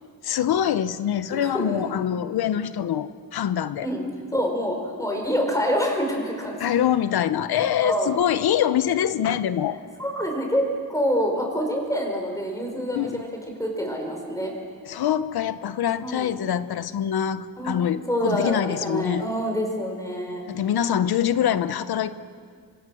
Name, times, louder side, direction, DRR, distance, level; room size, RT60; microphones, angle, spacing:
voice 1, 0.2-3.9 6.6-9.8 12.9-13.2 14.9-19.3 20.5-22.1, left 10 dB, 80° left, 13 dB, 0.9 m, -24 dB
voice 2, 1.3-1.9 3.8-4.0 4.3-6.6 7.5-8.1 10.0-10.6 10.9-13.3 13.6-14.5 16.0-16.3 17.6-17.7 18.1-20.4, equal, 10° left, 2 dB, 4.9 m, -26 dB
25.5 x 25.5 x 6.3 m, 2.1 s
wide cardioid pair, 140°, 37 cm